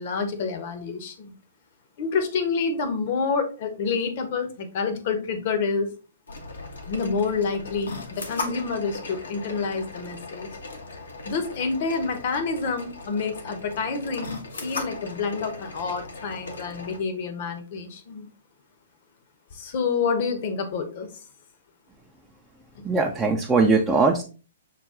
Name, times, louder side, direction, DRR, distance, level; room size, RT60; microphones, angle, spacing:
voice 1, 0.0-1.3 2.0-5.9 6.9-10.5 11.2-18.3 19.5-21.2 22.7-22.8, left 5 dB, 50° left, 8 dB, 0.9 m, -28 dB
sound 1, 6.3-17.0, left 3 dB, 80° left, 1.0 m, -38 dB
voice 2, 22.8-24.2, right 4 dB, 10° right, 0 dB, 0.5 m, -20 dB
5.8 x 2.3 x 3.6 m, 0.36 s
hypercardioid pair, 125°, 0 cm